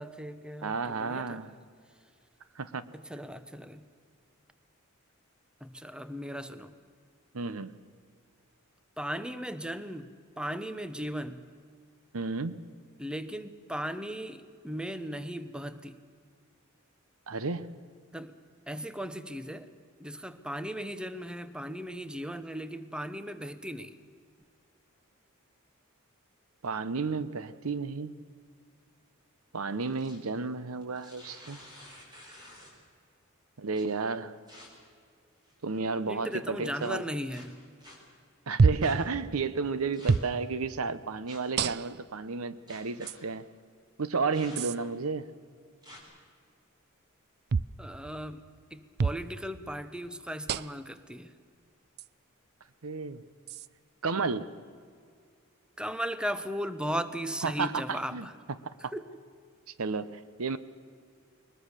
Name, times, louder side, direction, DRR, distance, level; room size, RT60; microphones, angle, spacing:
voice 1, 0.0-1.4 2.9-3.8 5.6-6.7 9.0-10.1 10.4-11.4 13.0-16.0 18.1-18.3 18.7-19.7 20.0-23.9 36.1-37.6 44.5-44.6 47.8-48.4 48.7-51.3 55.8-58.3 58.9-59.0, equal, 5° right, 0.8 m, -37 dB
voice 2, 0.6-1.6 2.6-2.9 7.3-7.7 12.1-12.6 17.3-17.7 26.6-28.1 29.5-31.6 33.6-34.4 35.6-37.0 38.5-43.5 44.0-45.3 52.8-53.2 54.0-54.5 57.4-58.3 58.6-58.9 59.8-60.6, right 4 dB, 80° right, 0.9 m, -32 dB
sound 1, 29.7-30.3 30.8-32.9 33.7-33.8 34.5-34.7 35.4-35.8 36.8-36.9 37.3-38.0 38.8-38.9 39.9-40.4 41.3-41.6 42.7-43.1 44.3-44.9 45.8-46.0, left 1 dB, 20° right, 4.7 m, -50 dB
sound 2, 38.6-39.0 40.1-40.3 41.6-42.1 43.1-43.2 44.6-44.8 47.5-47.8 49.0-49.2 50.5-50.9 52.0-52.1 53.5-53.7, right 4 dB, 50° right, 0.4 m, -26 dB
21.5 x 20.5 x 6.7 m
head